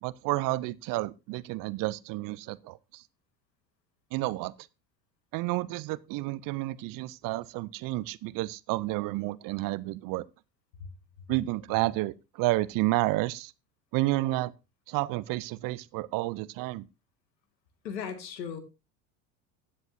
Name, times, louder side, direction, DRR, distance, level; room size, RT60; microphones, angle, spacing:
voice 1, 0.0-3.0 4.1-4.5 5.3-10.2 11.3-13.5 13.9-14.5 14.9-16.9, right 19 dB, 45° right, 0.6 m, -30 dB
voice 2, 17.8-18.6, left 7 dB, 80° left, 2.3 m, -36 dB
15.5 x 9.7 x 2.7 m
hypercardioid pair, 85°, 50 cm